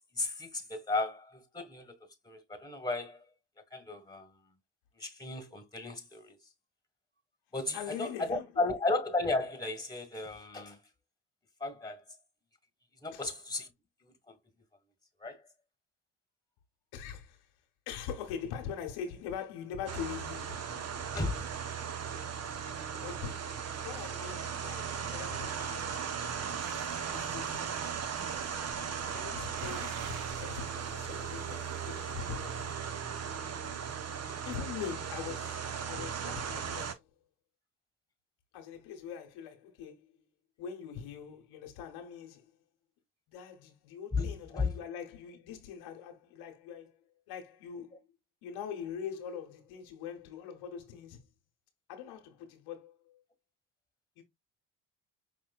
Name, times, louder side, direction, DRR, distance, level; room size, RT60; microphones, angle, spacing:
voice 1, 0.1-1.9 2.2-3.2 3.7-4.4 4.9-6.4 7.5-10.8 11.6-12.0 13.0-13.7 14.0-14.4 15.2-15.4 21.1-21.6 44.1-44.7, left 3 dB, 10° left, 1.5 m, -34 dB
voice 2, 7.7-8.6 13.1-13.2 16.9-17.5 17.9-20.8 23.0-26.0 27.1-27.7 29.1-32.8 34.4-37.0 38.5-40.1 40.6-42.5 43.3-47.0 47.3-48.0 48.4-51.3 51.9-53.2 54.2-54.3, left 8 dB, 75° left, 1.1 m, -43 dB
sound 1, 19.9-36.9, right 7 dB, 40° right, 0.9 m, -37 dB
sound 2, 26.6-32.7, right 7 dB, 90° right, 0.8 m, -50 dB
5.2 x 3.0 x 2.3 m
hypercardioid pair, 55°, 39 cm